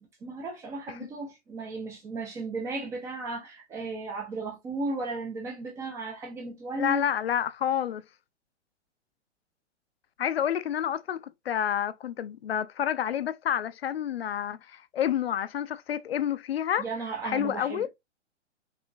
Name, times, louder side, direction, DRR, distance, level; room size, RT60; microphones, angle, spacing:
voice 1, 0.2-7.0 16.8-17.9, right 3 dB, 10° right, 0.4 m, -35 dB
voice 2, 6.7-8.0 10.2-16.9 17.2-17.9, left 9 dB, 55° left, 0.5 m, -29 dB
5.4 x 2.8 x 2.5 m
figure-of-eight pair, 115°, 36 cm